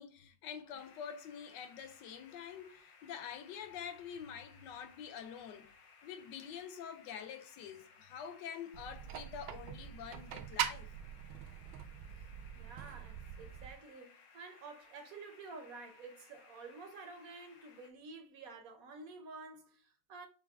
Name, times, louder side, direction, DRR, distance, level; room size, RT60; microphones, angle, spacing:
voice 1, 0.0-5.7 6.0-10.9, left 8 dB, 70° left, 1.2 m, -46 dB
sound 1, 0.7-17.9, left 5 dB, 90° left, 1.7 m, -62 dB
sound 2, 8.7-13.7, right 10 dB, 80° right, 1.4 m, -42 dB
voice 2, 12.5-20.3, right 3 dB, 65° right, 0.9 m, -50 dB
5.6 x 2.2 x 3.5 m
omnidirectional pair, 2.3 m